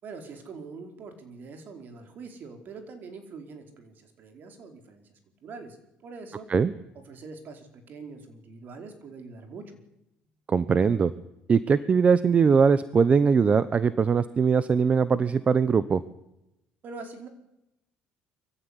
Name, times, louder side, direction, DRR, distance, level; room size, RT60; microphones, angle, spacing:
voice 1, 0.0-6.5 6.9-9.7 16.8-17.3, right 4 dB, 55° right, 6 dB, 4.8 m, -44 dB
voice 2, 10.5-11.1 11.5-16.0, right 6 dB, 35° right, 15 dB, 1.0 m, -21 dB
23.5 x 15.5 x 10.0 m, 0.90 s
supercardioid pair, 95°, 4 cm